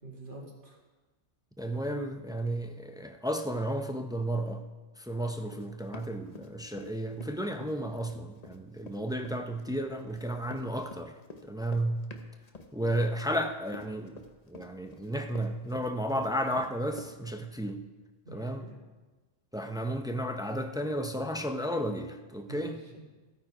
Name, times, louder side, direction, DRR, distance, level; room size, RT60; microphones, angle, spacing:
voice 1, 0.0-0.8 18.2-18.8 22.5-23.1, right 2 dB, 45° right, -3 dB, 2.4 m, -47 dB
voice 2, 1.6-4.6 5.0-11.1 11.4-12.1 12.7-17.8 18.3-18.6 19.5-22.8, right 1 dB, 5° right, 6 dB, 0.3 m, -33 dB
Run, 5.5-6.9 7.2-17.1, left 3 dB, 35° left, 0.9 m, -48 dB
14.0 x 8.9 x 4.8 m, 1.3 s
omnidirectional pair, 1.2 m